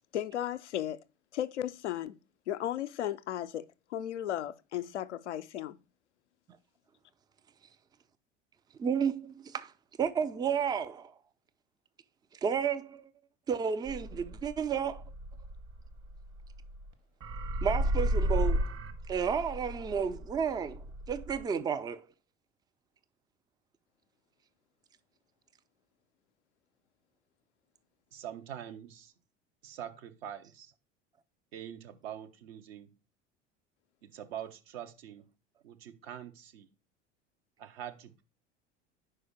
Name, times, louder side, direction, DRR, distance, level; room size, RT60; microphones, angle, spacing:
voice 1, 0.1-1.0 1.3-2.2 2.5-3.6 3.9-5.8, left 11 dB, 75° left, 0.5 m, -35 dB
voice 2, 8.8-9.7 10.0-11.1 12.4-13.1 13.5-15.0 17.6-18.7 19.1-22.1, right 7 dB, 10° right, 0.4 m, -32 dB
sound 1, 13.9-16.9 17.2-21.4, right 1 dB, 35° right, 1.0 m, -33 dB
voice 3, 28.1-29.1 29.6-30.7 31.5-32.9 34.0-35.2 35.6-36.7 37.6-38.2, right 10 dB, 65° right, 0.9 m, -44 dB
5.0 x 4.9 x 4.2 m
figure-of-eight pair, 70°, 35 cm